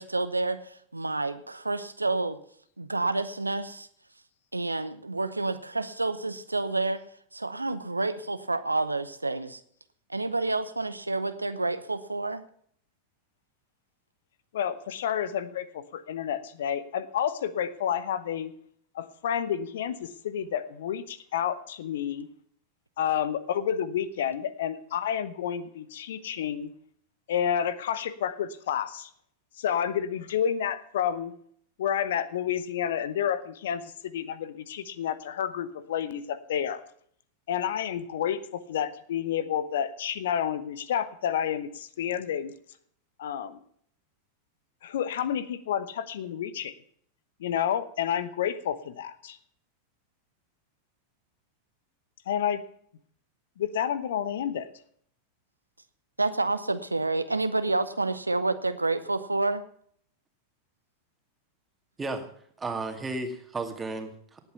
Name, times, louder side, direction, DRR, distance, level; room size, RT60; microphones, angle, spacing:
voice 1, 0.0-2.4 2.8-3.9 4.5-7.0 7.3-9.6 10.1-12.4 56.2-59.6, right 2 dB, 80° right, 12 dB, 0.9 m, -29 dB
voice 2, 14.5-18.5 18.9-22.3 23.0-26.7 27.3-29.1 29.6-31.3 31.8-36.8 37.5-42.5 43.2-43.6 44.8-46.7 47.4-49.4 52.3-52.6 53.6-54.7, left 9 dB, 60° left, 16 dB, 1.0 m, -30 dB
voice 3, 62.0-62.3 62.6-64.5, right 3 dB, 15° right, 6 dB, 2.4 m, -34 dB
18.0 x 8.3 x 5.7 m, 0.62 s
figure-of-eight pair, 90°, 0 cm